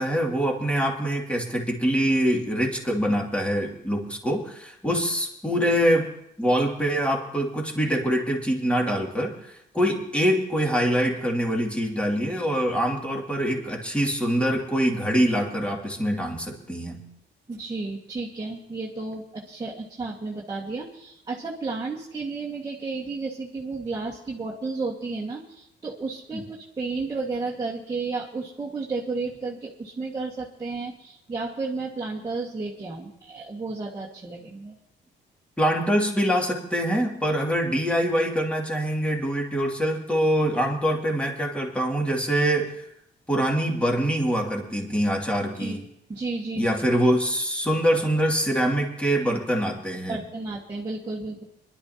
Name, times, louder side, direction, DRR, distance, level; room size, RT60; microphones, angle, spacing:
voice 1, 0.0-6.1 6.4-17.0 26.3-26.4 35.6-42.8 43.3-45.8 46.5-50.2, equal, 5° left, 0 dB, 2.6 m, -24 dB
voice 2, 17.5-34.7 45.6-45.8 46.1-46.7 50.1-51.4, right 3 dB, 20° right, -5 dB, 1.8 m, -32 dB
22.5 x 11.5 x 2.9 m, 0.76 s
cardioid pair, 90°, 20 cm